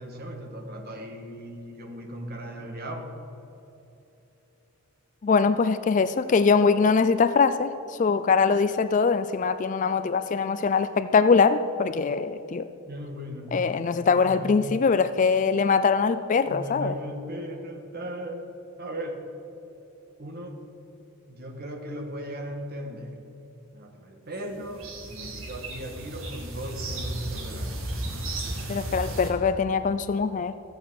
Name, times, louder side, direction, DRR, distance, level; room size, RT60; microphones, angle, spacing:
voice 1, 0.0-3.1 12.8-14.6 16.5-18.5 18.8-19.2 20.2-20.6 21.3-23.2 23.7-27.8 28.5-29.3, equal, 45° right, 4 dB, 1.5 m, -37 dB
voice 2, 5.2-12.7 13.5-16.9 28.7-30.5, left 5 dB, 35° left, 12 dB, 0.3 m, -22 dB
sound 1, 24.3-29.3, right 1 dB, 65° right, 1.6 m, -34 dB
13.5 x 8.0 x 6.4 m, 2.9 s
head